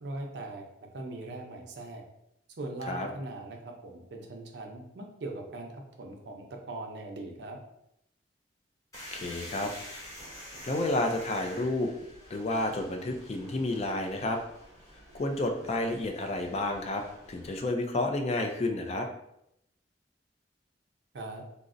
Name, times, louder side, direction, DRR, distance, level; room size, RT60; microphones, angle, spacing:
voice 1, 0.0-0.7 0.9-2.0 2.6-7.6 21.1-21.4, right 2 dB, 70° right, 2 dB, 0.5 m, -40 dB
sound 1, 8.9-17.6, equal, 20° left, 0.9 m, -48 dB
voice 2, 9.1-9.7 10.6-11.9 12.3-14.4 15.1-19.1, left 2 dB, 35° left, 4 dB, 0.4 m, -30 dB
3.7 x 2.0 x 2.5 m, 0.78 s
head